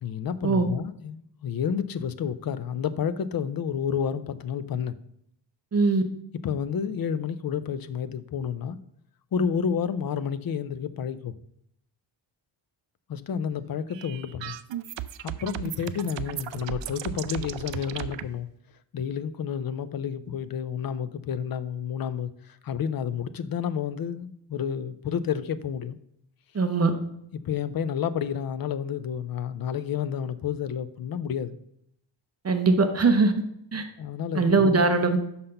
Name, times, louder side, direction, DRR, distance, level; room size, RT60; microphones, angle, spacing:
voice 1, 0.0-4.9 6.4-8.8 9.3-11.3 13.1-14.5 15.2-18.5 18.9-26.0 27.3-31.6 34.0-34.8, left 7 dB, 50° left, 0.5 m, -30 dB
voice 2, 5.7-6.0 26.5-26.9 32.4-33.3 33.7-33.8 34.3-35.2, right 3 dB, 35° right, 0.7 m, -21 dB
sound 1, 13.9-18.2, right 11 dB, 75° right, 0.5 m, -35 dB
5.7 x 5.7 x 6.6 m
wide cardioid pair, 170°, 45 cm